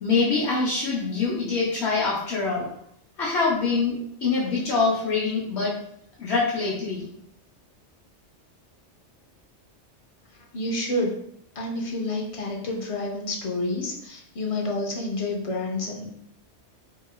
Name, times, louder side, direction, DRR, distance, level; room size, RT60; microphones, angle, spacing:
voice 1, 0.0-2.7 3.2-5.8 6.2-7.1, left 4 dB, 70° left, -5 dB, 1.0 m, -24 dB
voice 2, 10.5-11.1 11.6-16.1, left 2 dB, 45° left, 0 dB, 0.4 m, -29 dB
3.1 x 2.8 x 2.2 m, 0.70 s
omnidirectional pair, 1.2 m